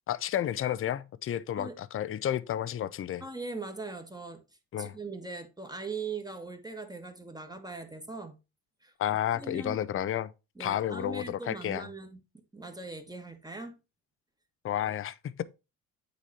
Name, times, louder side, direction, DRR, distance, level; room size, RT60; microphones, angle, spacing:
voice 1, 0.1-3.2 4.7-4.9 9.0-10.3 10.6-11.9 14.6-15.4, left 11 dB, 30° left, 0.6 m, -31 dB
voice 2, 3.2-4.4 4.8-8.4 8.8-8.9 9.3-9.8 10.5-12.2 12.5-13.8, right 3 dB, 10° right, 1.4 m, -40 dB
8.3 x 4.1 x 4.1 m
hypercardioid pair, 70°, 43 cm